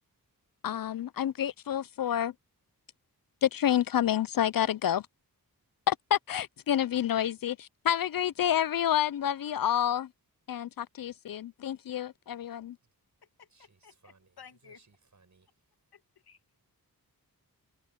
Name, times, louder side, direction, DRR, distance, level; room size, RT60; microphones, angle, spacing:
voice 1, 0.6-2.3 3.4-5.1 5.9-10.1 10.5-12.8, left 10 dB, 65° left, 0.5 m, -29 dB
voice 2, 12.5-13.1 13.5-15.8, right 4 dB, 50° right, 7.7 m, -65 dB
voice 3, 13.2-14.8 15.9-16.4, left 7 dB, 90° left, 1.7 m, -55 dB
wide cardioid pair, 125°, 37 cm